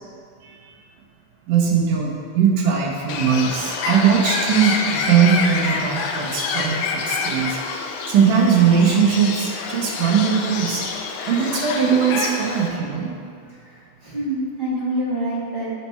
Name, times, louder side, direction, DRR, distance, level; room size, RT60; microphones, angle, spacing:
voice 1, 1.5-7.5 8.1-10.8 11.3-13.1, right 7 dB, 85° right, 0 dB, 2.5 m, -19 dB
Bird, 3.1-12.7, left 4 dB, 80° left, 1.9 m, -27 dB
voice 2, 13.7-15.7, right 1 dB, 20° right, -9 dB, 1.6 m, -26 dB
8.8 x 4.5 x 4.3 m, 2.3 s
omnidirectional pair, 3.5 m